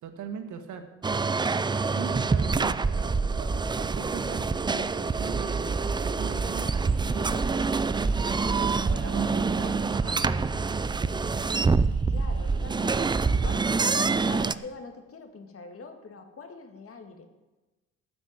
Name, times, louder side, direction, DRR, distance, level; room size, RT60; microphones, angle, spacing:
voice 1, 0.0-0.9 1.1-7.7 8.4-10.6, right 6 dB, 75° right, 6 dB, 1.7 m, -41 dB
sound 1, 1.0-14.5, right 4 dB, 15° right, 0.4 m, -26 dB
sound 2, 5.1-14.4, right 4 dB, 50° right, 2.8 m, -37 dB
voice 2, 8.7-9.5 12.1-17.3, left 3 dB, 50° left, 6 dB, 2.0 m, -44 dB
13.0 x 6.1 x 9.6 m, 1.1 s
cardioid pair, 90°, 30 cm